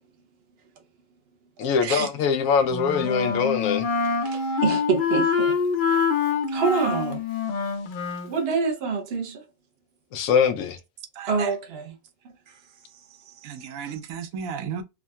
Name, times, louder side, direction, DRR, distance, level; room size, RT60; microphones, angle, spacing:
voice 1, 1.6-3.9 10.1-10.8, left 6 dB, 90° left, 1.0 m, -22 dB
Wind instrument woodwind instrument, 2.7-8.3, left 5 dB, 55° left, 0.5 m, -25 dB
voice 2, 4.2-5.6 6.5-7.2 8.2-9.4 11.3-12.0 13.9-14.0, right 5 dB, 55° right, 0.9 m, -26 dB
voice 3, 11.2-11.5 13.4-14.8, right 7 dB, 90° right, 1.0 m, -33 dB
3.6 x 2.1 x 2.3 m
omnidirectional pair, 1.4 m